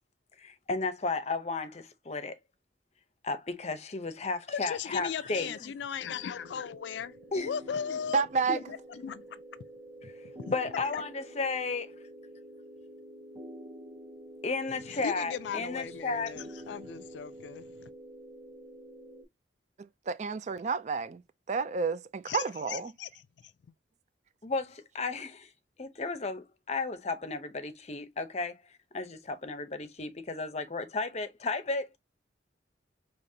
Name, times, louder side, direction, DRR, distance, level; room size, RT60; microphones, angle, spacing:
voice 1, 0.4-2.3 3.2-5.7 7.3-7.5 10.0-10.1 10.5-11.9 14.4-16.3 24.4-25.5 25.8-28.6 28.9-32.0, left 3 dB, 35° left, 0.7 m, -34 dB
voice 2, 4.5-8.2 8.5-9.4 10.4-10.5 10.9-11.0 14.9-17.9 22.3-23.1, left 7 dB, 75° left, 0.4 m, -37 dB
sound 1, 6.0-19.2, right 1 dB, 15° right, 1.9 m, -48 dB
voice 3, 8.1-8.6 19.8-21.2 21.5-22.9, right 5 dB, 40° right, 0.4 m, -30 dB
5.1 x 2.9 x 2.7 m
head